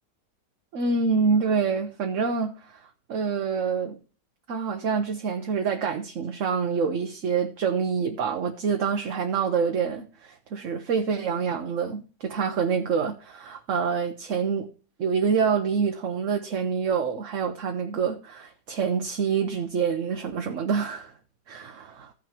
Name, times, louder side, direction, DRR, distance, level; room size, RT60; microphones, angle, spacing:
voice 1, 0.7-2.8 3.1-4.0 4.5-14.7 15.0-21.1 21.5-22.1, right 6 dB, 55° right, 1.1 m, -26 dB
15.5 x 6.2 x 2.9 m
omnidirectional pair, 1.8 m